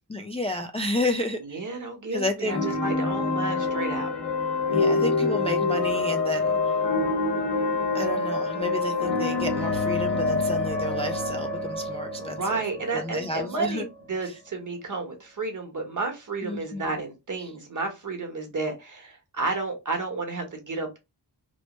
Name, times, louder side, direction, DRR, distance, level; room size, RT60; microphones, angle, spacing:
voice 1, 0.1-1.6 2.1-2.7 4.7-6.8 7.9-12.6 12.9-13.9 14.2-14.3 16.4-17.0 17.4-17.5, left 1 dB, 15° left, 0.3 m, -31 dB
voice 2, 1.4-4.1 12.2-21.0, right 3 dB, 45° right, 1.1 m, -31 dB
sound 1, 2.4-14.1, left 3 dB, 80° left, 1.3 m, -26 dB
3.1 x 2.0 x 3.0 m
wide cardioid pair, 80°, 42 cm